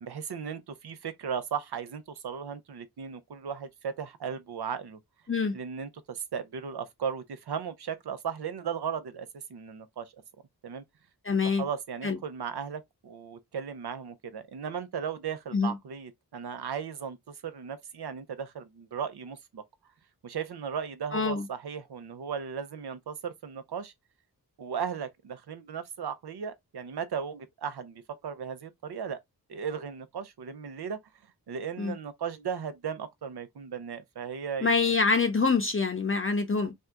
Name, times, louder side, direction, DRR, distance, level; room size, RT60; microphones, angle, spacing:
voice 1, 0.0-5.0 5.5-10.1 10.6-10.8 11.6-19.6 20.2-23.9 24.6-29.2 29.5-31.0 31.5-34.7, right 7 dB, 75° right, 0.7 m, -36 dB
voice 2, 11.2-11.7 12.0-12.2 15.5-15.8 21.1-21.5 31.8-31.9 34.6-36.7, left 4 dB, 30° left, 0.6 m, -25 dB
2.7 x 2.2 x 3.4 m
cardioid pair, 50°, 40 cm